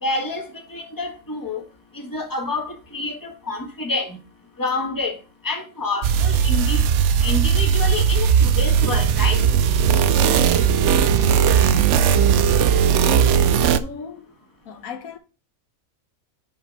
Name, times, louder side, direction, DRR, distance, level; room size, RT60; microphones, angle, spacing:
voice 1, 0.0-1.6 1.9-4.2 4.6-5.2 5.4-6.8 7.2-9.4, left 2 dB, 15° left, 1.4 m, -28 dB
sound 1, 6.0-13.8, right 8 dB, 65° right, 0.8 m, -17 dB
voice 2, 10.2-10.6 13.0-14.3 14.6-15.2, left 5 dB, 75° left, 1.3 m, -36 dB
5.8 x 5.2 x 5.3 m
omnidirectional pair, 1.5 m